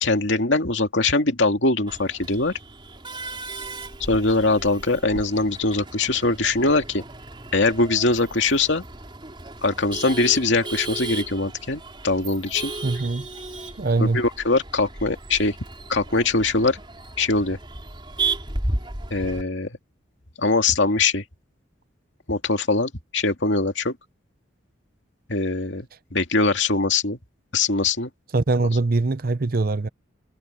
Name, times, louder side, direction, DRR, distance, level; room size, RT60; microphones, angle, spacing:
voice 1, 0.0-2.5 4.1-7.0 7.5-8.8 9.6-12.7 14.0-15.6 15.9-16.8 17.2-17.6 19.1-19.8 20.4-21.2 22.3-24.0 25.3-27.2 27.5-28.1, left 3 dB, 65° left, 2.4 m, -22 dB
Male speech man speaking / Laughter / Chatter, 1.9-19.4, right 3 dB, 25° right, 4.2 m, -35 dB
voice 2, 12.8-13.3 13.8-14.2 28.3-29.9, right 3 dB, 45° right, 0.6 m, -22 dB
head